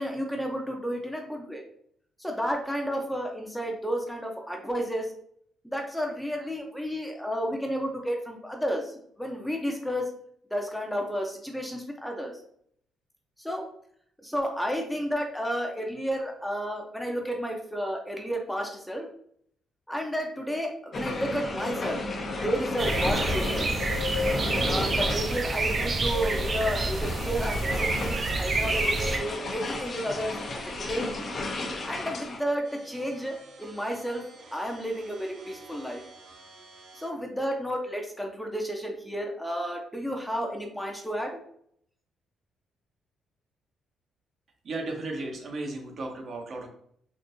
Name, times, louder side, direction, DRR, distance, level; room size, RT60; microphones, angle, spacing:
voice 1, 0.0-1.7 2.2-5.1 5.6-10.1 10.5-12.3 13.4-13.6 14.2-19.1 19.9-22.0 22.4-23.8 24.6-31.1 31.8-34.2 34.5-36.0 36.9-41.3, equal, 5° left, 1 dB, 0.6 m, -32 dB
sound 1, 20.9-32.4, left 2 dB, 45° left, 0.6 m, -33 dB
sound 2, 22.8-29.2, right 2 dB, 40° right, 0.5 m, -28 dB
sound 3, 27.2-37.2, right 3 dB, 90° right, 1.3 m, -51 dB
voice 2, 44.6-46.7, right 2 dB, 55° right, 1 dB, 0.9 m, -35 dB
3.7 x 2.6 x 2.6 m, 0.66 s
cardioid pair, 90°, 0 cm